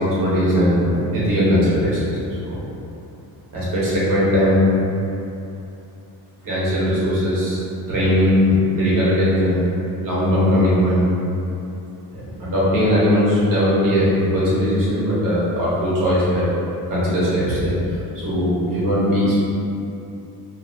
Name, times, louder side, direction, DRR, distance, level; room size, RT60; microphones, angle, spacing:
voice 1, 0.0-2.1 2.4-2.6 3.5-4.7 6.4-7.6 7.9-9.8 10.0-11.1 12.1-16.4 16.9-19.4, equal, 50° right, -9 dB, 1.0 m, -19 dB
2.7 x 2.0 x 2.7 m, 2.7 s
cardioid pair, 110°, 44 cm